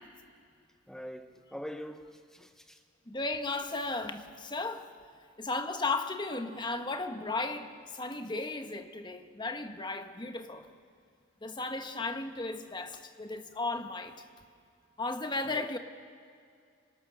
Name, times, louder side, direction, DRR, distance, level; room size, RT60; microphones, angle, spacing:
voice 1, 0.9-2.8 15.5-15.7, equal, 5° left, 0.5 m, -43 dB
voice 2, 3.1-4.9 5.4-10.7 11.4-14.2 15.0-15.8, left 3 dB, 20° left, 1.1 m, -35 dB
26.5 x 23.0 x 6.4 m
head